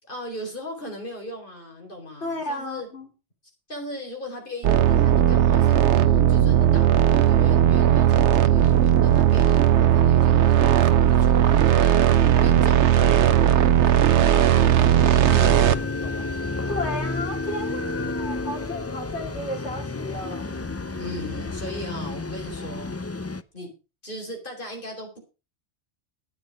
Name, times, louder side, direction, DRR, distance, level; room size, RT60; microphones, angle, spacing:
voice 1, 0.0-2.9 3.7-14.0 14.3-16.3 21.0-22.9 23.5-23.7 24.0-25.2, left 1 dB, 50° left, 1 dB, 4.6 m, -38 dB
voice 2, 2.2-3.1 14.3-14.6 16.7-20.5, left 1 dB, 70° left, -1 dB, 3.3 m, -33 dB
sound 1, 4.6-15.7, right 10 dB, 85° right, 1.1 m, -17 dB
sound 2, 15.2-23.4, left 3 dB, 25° left, 0.3 m, -31 dB
11.5 x 9.4 x 5.2 m, 0.31 s
omnidirectional pair, 1.2 m